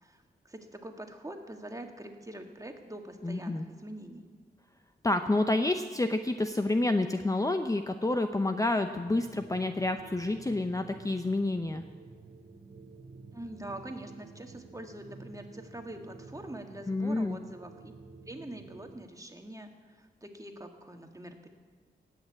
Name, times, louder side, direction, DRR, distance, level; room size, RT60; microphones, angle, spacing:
voice 1, 0.0-4.3 13.3-17.9 18.2-21.5, right 1 dB, 20° right, 4 dB, 1.7 m, -44 dB
voice 2, 3.2-3.6 5.0-11.8 16.9-17.4, left 2 dB, 20° left, 7 dB, 0.7 m, -29 dB
sound 1, 8.8-19.1, right 3 dB, 55° right, 1.4 m, -51 dB
17.0 x 6.6 x 8.6 m, 1.5 s
cardioid pair, 60°, 19 cm